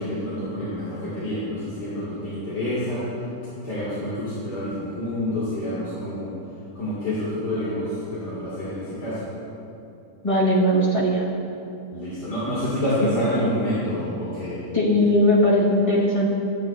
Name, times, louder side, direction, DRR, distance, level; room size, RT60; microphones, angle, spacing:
voice 1, 0.0-3.1 3.6-6.3 6.8-9.2 11.9-14.7, left 1 dB, 90° left, -12 dB, 2.6 m, -28 dB
voice 2, 10.2-11.2 14.7-16.3, equal, 20° left, -5 dB, 1.4 m, -19 dB
12.5 x 9.4 x 2.5 m, 2.8 s
omnidirectional pair, 1.7 m